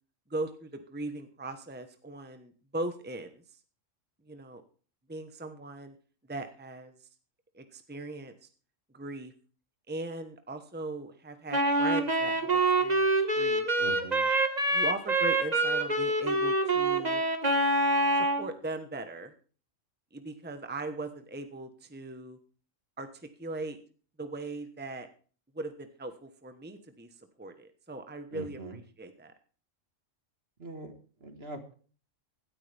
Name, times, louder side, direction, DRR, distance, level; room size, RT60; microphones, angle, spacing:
voice 1, 0.3-3.4 4.3-4.6 5.1-5.9 6.3-6.9 7.5-8.5 8.9-9.3 9.9-13.7 14.7-17.2 18.1-19.3 20.1-22.4 23.0-23.8 24.2-25.1 25.5-27.1 27.4-29.3, right 2 dB, 10° right, 8 dB, 1.1 m, -39 dB
Wind instrument woodwind instrument, 11.5-18.5, right 2 dB, 35° right, 1.7 m, -26 dB
voice 2, 13.8-14.3 28.3-28.8 30.6-30.9 31.2-31.8, right 2 dB, 50° right, 7 dB, 2.1 m, -42 dB
16.5 x 13.0 x 3.5 m, 0.40 s
omnidirectional pair, 1.3 m